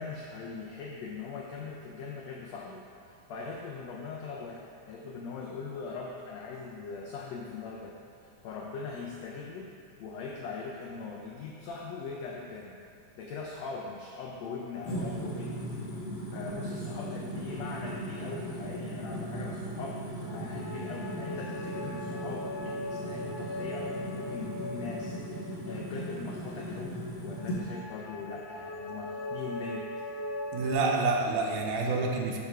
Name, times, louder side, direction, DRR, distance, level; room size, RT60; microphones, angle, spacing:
voice 1, 0.0-9.7 10.0-12.8 13.2-15.6 16.3-27.0 27.2-29.9, left 4 dB, 85° left, -2 dB, 1.5 m, -41 dB
sound 1, 14.8-27.6, right 1 dB, 65° left, 0.9 m, -38 dB
sound 2, 20.0-26.6 27.3-30.7, left 1 dB, 20° left, 1.2 m, -40 dB
voice 2, 30.5-32.4, right 3 dB, 80° right, 1 dB, 2.2 m, -28 dB
6.6 x 6.0 x 4.4 m, 2.6 s
omnidirectional pair, 3.7 m